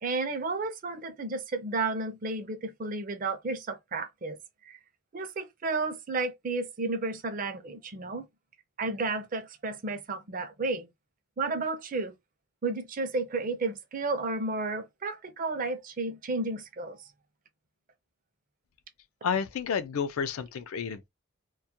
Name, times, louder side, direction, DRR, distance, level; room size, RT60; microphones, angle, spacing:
voice 1, 0.0-4.4 4.7-4.8 5.1-8.3 8.8-10.9 11.4-12.1 12.6-17.0, right 3 dB, 40° right, 0.4 m, -32 dB
voice 2, 19.2-21.1, left 6 dB, 80° left, 0.4 m, -31 dB
2.3 x 2.1 x 2.7 m
head